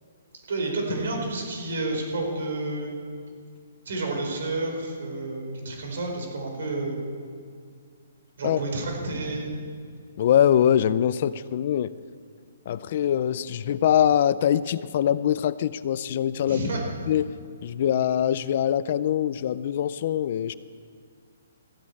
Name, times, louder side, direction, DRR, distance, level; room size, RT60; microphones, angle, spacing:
voice 1, 0.5-3.0 3.8-7.0 8.4-9.5 16.5-16.8, right 2 dB, 60° right, 1 dB, 4.6 m, -30 dB
voice 2, 10.2-11.9 12.7-16.7 17.1-17.3 17.6-20.5, left 10 dB, 35° left, 17 dB, 0.3 m, -23 dB
15.5 x 8.5 x 8.5 m, 2.1 s
hypercardioid pair, 175°, 0 cm